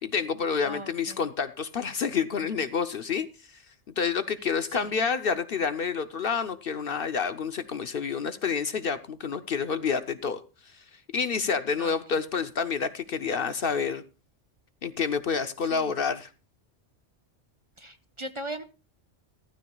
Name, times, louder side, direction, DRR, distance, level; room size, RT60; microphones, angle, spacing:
voice 1, 0.0-3.3 4.0-10.4 11.1-14.0 14.8-16.3, left 6 dB, 55° left, 0.9 m, -28 dB
voice 2, 0.6-1.2 4.7-4.9 11.8-12.0 15.6-15.9 17.8-18.6, right 1 dB, 30° right, 0.9 m, -38 dB
15.0 x 14.5 x 2.3 m
omnidirectional pair, 1.2 m